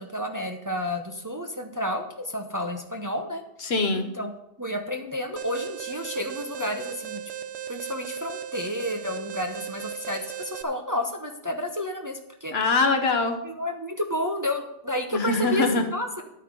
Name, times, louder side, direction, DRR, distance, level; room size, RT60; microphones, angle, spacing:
voice 1, 0.0-3.4 3.9-4.3 4.6-7.2 7.7-12.5 13.4-15.7 15.9-16.2, left 1 dB, 20° right, 3 dB, 0.9 m, -31 dB
voice 2, 3.6-4.1 12.5-13.4 15.1-15.8, left 3 dB, 60° left, 5 dB, 1.3 m, -23 dB
Alarm, 5.4-10.6, right 9 dB, 70° right, 1.1 m, -37 dB
11.0 x 8.7 x 5.3 m, 0.82 s
omnidirectional pair, 1.2 m